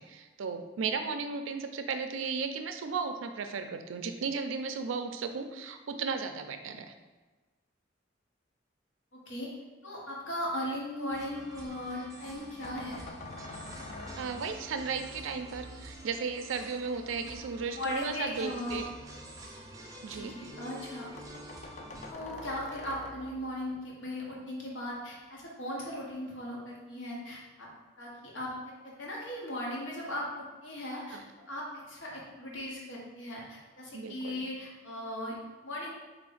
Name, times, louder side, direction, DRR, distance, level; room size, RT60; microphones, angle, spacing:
voice 1, 0.0-6.9 14.2-18.9 20.0-20.4 31.1-31.2 33.9-34.5, right 5 dB, 85° right, 7 dB, 0.4 m, -35 dB
voice 2, 9.1-9.5 9.8-13.1 16.8-17.3 17.7-18.8 20.1-21.1 22.1-27.7 28.0-31.2 31.5-35.9, left 1 dB, 75° left, -4 dB, 1.1 m, -38 dB
sound 1, 11.1-22.1, right 1 dB, 15° right, 0.5 m, -48 dB
sound 2, 12.6-15.0 16.9-20.2 20.5-20.6 20.9-21.0 21.2-23.7, left 2 dB, 35° left, 0.4 m, -47 dB
4.2 x 3.1 x 3.8 m, 1.3 s
head